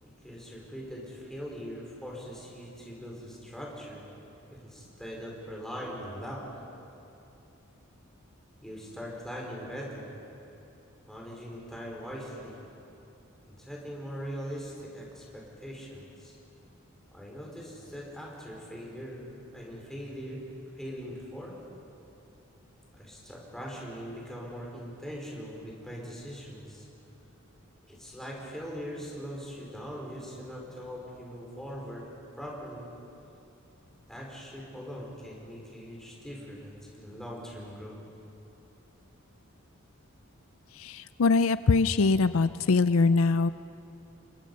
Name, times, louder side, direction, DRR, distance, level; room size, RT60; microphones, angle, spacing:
voice 1, 0.0-4.1 4.5-6.5 8.6-10.1 11.1-12.6 13.5-16.4 17.1-21.6 23.0-26.9 27.9-32.1 32.4-32.9 34.1-38.0, equal, ahead, -3 dB, 4.8 m, -41 dB
voice 2, 40.8-43.5, left 4 dB, 75° left, 13 dB, 0.5 m, -23 dB
29.0 x 23.5 x 5.6 m, 2.9 s
head